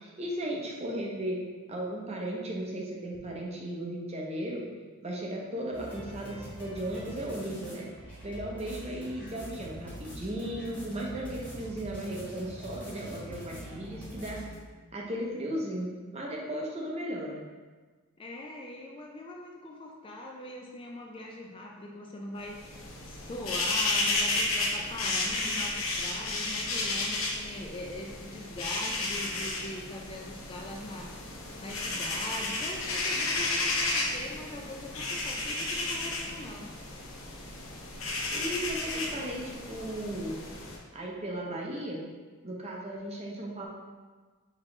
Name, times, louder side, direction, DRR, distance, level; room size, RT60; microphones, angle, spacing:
voice 1, 0.0-1.3 1.7-4.6 5.0-7.9 8.2-14.4 14.9-17.4 38.3-40.4 40.9-42.0 42.4-43.7, right 1 dB, 30° right, -2 dB, 0.6 m, -36 dB
sound 1, 5.7-14.6, equal, 5° left, 1.2 m, -44 dB
voice 2, 18.2-31.3 31.6-36.7, left 1 dB, 25° left, 0 dB, 0.3 m, -42 dB
sound 2, 22.5-40.8, left 2 dB, 70° left, 0.7 m, -33 dB
4.9 x 2.9 x 3.2 m, 1.4 s
head